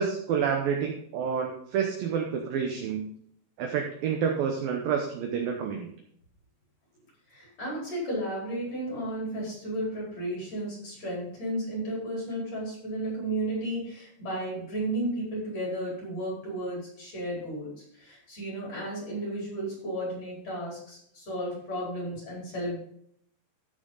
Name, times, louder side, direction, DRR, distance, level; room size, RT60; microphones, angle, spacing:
voice 1, 0.0-3.1 3.6-5.9, right 7 dB, 85° right, 2 dB, 2.0 m, -29 dB
voice 2, 7.3-22.8, right 1 dB, 35° left, -5 dB, 5.3 m, -33 dB
15.0 x 6.5 x 4.0 m, 0.67 s
omnidirectional pair, 5.5 m